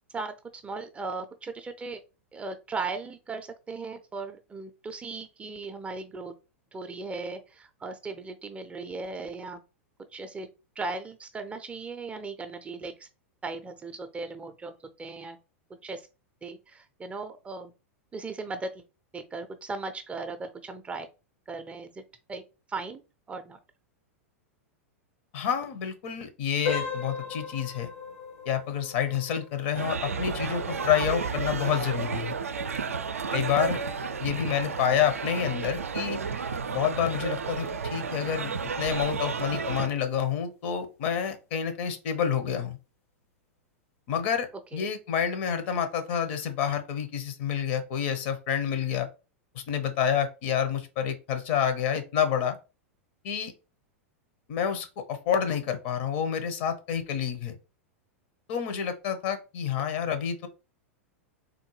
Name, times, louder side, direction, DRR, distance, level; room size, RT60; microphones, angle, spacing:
voice 1, 0.6-2.0 2.3-6.3 6.7-9.6 10.1-10.5 10.8-13.1 13.4-15.4 15.8-16.1 16.4-17.7 18.1-18.8 19.1-21.1 21.5-22.0 22.3-22.4 22.7-23.0 23.3-23.6 44.7-44.8, right 3 dB, 15° right, 8 dB, 0.4 m, -37 dB
voice 2, 25.3-27.9 28.5-32.4 33.3-33.8 34.2-36.2 36.7-38.5 38.8-42.8 44.1-49.1 49.5-52.6 53.2-53.5 54.5-57.6 58.5-60.5, left 8 dB, 55° left, 8 dB, 0.8 m, -28 dB
sound 1, 26.6-37.3 37.7-37.9 38.5-38.6 39.1-39.2, left 6 dB, 80° left, 1.3 m, -40 dB
sound 2, 29.8-39.9, right 5 dB, 85° right, 0.4 m, -32 dB
3.6 x 2.2 x 3.1 m, 0.30 s
hypercardioid pair, 100°, 7 cm